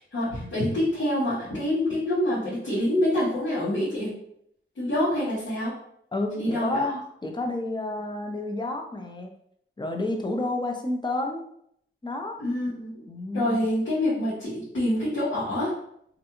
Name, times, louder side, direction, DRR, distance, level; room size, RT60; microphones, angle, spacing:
voice 1, 0.0-4.1 4.7-5.7 6.4-6.9 12.4-13.0 13.3-15.7, left 1 dB, 70° left, -11 dB, 1.0 m, -26 dB
voice 2, 6.1-9.3 9.8-11.4 12.0-12.4 13.1-13.7, left 2 dB, 20° left, 3 dB, 0.5 m, -30 dB
2.4 x 2.3 x 2.9 m, 0.71 s
wide cardioid pair, 60°, 21 cm